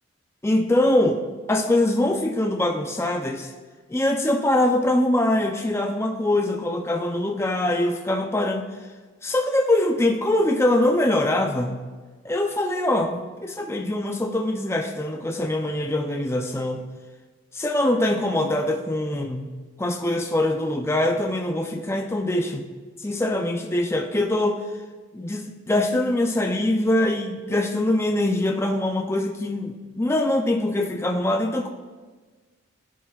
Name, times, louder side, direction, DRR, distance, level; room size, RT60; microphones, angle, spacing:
voice 1, 0.4-1.2 1.5-3.5 3.9-8.7 9.2-11.8 12.2-16.8 17.5-19.5 19.8-22.7 23.0-24.6 25.1-31.7, left 1 dB, 15° left, 3 dB, 0.4 m, -23 dB
16.0 x 9.2 x 2.4 m, 1.4 s
head